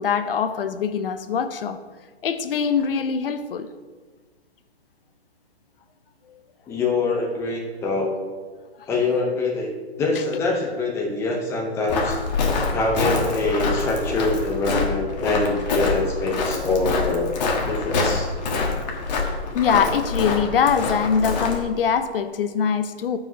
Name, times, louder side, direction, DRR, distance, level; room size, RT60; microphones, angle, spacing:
voice 1, 0.0-1.8 2.2-3.7 6.3-6.4 12.5-12.6 19.5-23.2, left 6 dB, 55° left, 11 dB, 0.7 m, -23 dB
voice 2, 6.7-8.1 8.9-12.2 12.7-17.3 17.6-18.3, left 3 dB, 10° left, -1 dB, 0.6 m, -24 dB
Walk footsteps, 11.9-21.6, left 3 dB, 40° left, 1.3 m, -25 dB
14.0 x 4.9 x 2.7 m, 1.4 s
hypercardioid pair, 150°, 33 cm